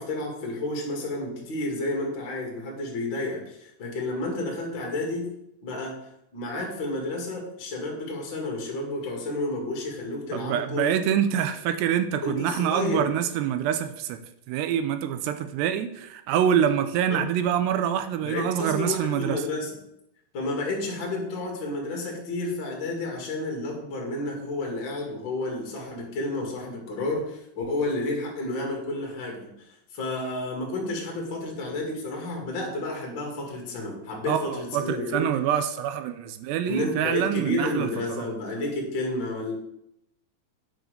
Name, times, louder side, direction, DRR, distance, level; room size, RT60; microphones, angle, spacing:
voice 1, 0.0-5.3 5.6-6.0 6.3-11.0 12.2-13.1 17.1-17.3 18.2-19.7 20.3-29.5 29.9-35.3 36.6-39.5, left 2 dB, 35° left, 0 dB, 2.2 m, -31 dB
voice 2, 10.3-14.2 14.5-19.4 34.3-37.9 38.2-38.3, right 9 dB, 80° right, 9 dB, 2.5 m, -26 dB
10.0 x 4.7 x 6.5 m, 0.79 s
omnidirectional pair, 5.3 m